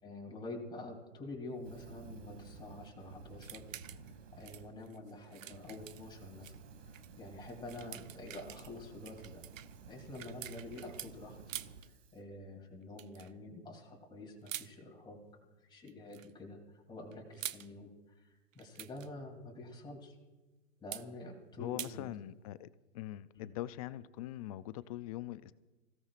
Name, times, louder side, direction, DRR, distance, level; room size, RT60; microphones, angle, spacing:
voice 1, 0.0-3.6 4.0-6.5 6.8-9.4 9.9-15.2 15.6-20.1 20.8-22.1 23.3-23.5, left 2 dB, 10° left, -1 dB, 3.1 m, -48 dB
Fire, 1.6-4.7 5.2-12.2, right 5 dB, 70° right, 2.3 m, -54 dB
sound 1, 3.4-4.1 4.4-6.6 6.9-7.1 7.5-11.1 11.5-11.9 13.0-13.3 14.5-14.7 15.8-16.3 17.1-17.7 18.5-19.1 20.9-21.1 21.8-21.9, right 11 dB, 85° right, 0.8 m, -46 dB
voice 2, 21.6-22.7 22.9-25.5, left 14 dB, 30° left, 17 dB, 0.4 m, -42 dB
26.5 x 16.5 x 2.5 m, 1.2 s
hypercardioid pair, 140°, 38 cm